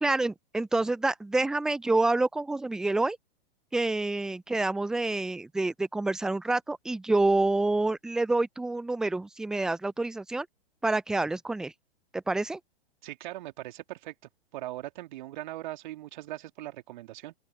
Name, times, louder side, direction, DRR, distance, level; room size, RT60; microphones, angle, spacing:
voice 1, 0.0-3.2 3.7-10.5 10.8-11.7 12.1-12.6, right 2 dB, ahead, 0.4 m, -27 dB
voice 2, 13.0-14.1 14.5-17.3, right 15 dB, 50° right, 3.1 m, -40 dB
open air
figure-of-eight pair, 110°, 31 cm